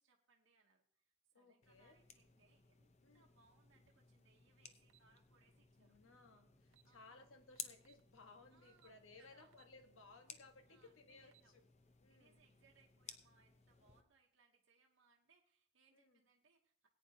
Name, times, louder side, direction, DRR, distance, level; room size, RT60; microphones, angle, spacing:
voice 1, 0.0-6.0 6.8-7.2 8.5-8.9 9.2-9.5 10.7-11.5 12.1-16.9, right 4 dB, 70° right, 0 dB, 1.0 m, -74 dB
voice 2, 1.3-2.0 3.0-3.3 5.8-11.7 12.0-12.5 15.9-16.2, left 3 dB, 80° left, 6 dB, 1.3 m, -62 dB
sound 1, 1.6-14.0, left 7 dB, 30° left, 0.7 m, -59 dB
sound 2, 4.9-5.1 6.3-6.4 6.7-6.9 7.6-8.1 8.8-9.0 9.5-9.8 10.2-10.3 11.1-11.5, right 14 dB, 85° right, 0.5 m, -70 dB
18.5 x 9.2 x 2.8 m, 0.64 s
head